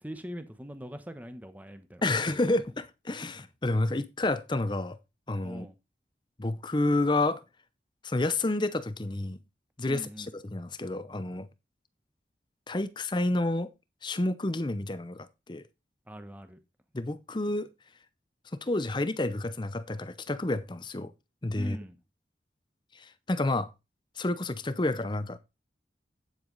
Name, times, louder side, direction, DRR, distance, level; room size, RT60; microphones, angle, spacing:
voice 1, 0.0-2.4 5.4-5.8 9.8-10.3 16.1-16.6 21.5-22.0, equal, 10° right, 1.0 m, -42 dB
voice 2, 2.0-5.0 5.3-5.7 6.4-7.4 8.0-9.4 9.8-10.1 10.4-11.5 12.7-13.7 14.0-15.6 16.9-17.7 18.6-21.1 21.4-21.8 23.0-23.7 24.2-25.4, left 2 dB, 25° left, 0.7 m, -29 dB
9.1 x 7.8 x 4.0 m
head